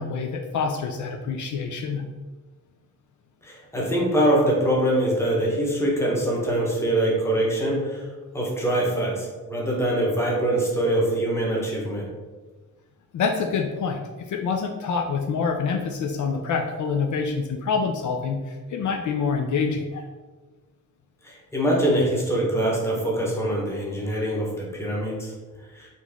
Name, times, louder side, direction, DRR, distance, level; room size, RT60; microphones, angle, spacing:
voice 1, 0.0-2.1 13.1-20.0, left 5 dB, 65° left, 3 dB, 0.5 m, -26 dB
voice 2, 3.4-8.0 8.3-12.1 21.2-25.3 25.7-25.9, right 1 dB, 10° left, -4 dB, 1.0 m, -23 dB
4.1 x 3.1 x 3.5 m, 1.3 s
wide cardioid pair, 145°, 32 cm